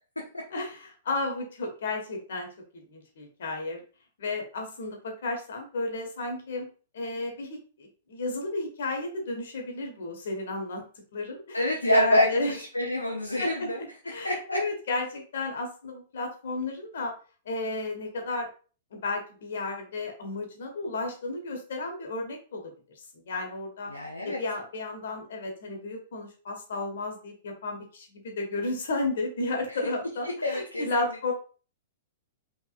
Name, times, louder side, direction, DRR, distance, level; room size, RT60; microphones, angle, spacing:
voice 1, 0.5-2.5 2.7-3.8 4.2-6.7 6.9-10.8 11.1-12.5 13.4-17.1 17.4-18.5 18.9-22.6 23.3-23.9 24.2-31.3, left 2 dB, 65° left, 2 dB, 1.6 m, -33 dB
voice 2, 11.5-13.8 14.2-14.6 23.9-24.4 30.4-31.2, left 1 dB, 90° left, -1 dB, 0.9 m, -27 dB
5.5 x 3.6 x 2.5 m, 0.38 s
figure-of-eight pair, 105°, 0 cm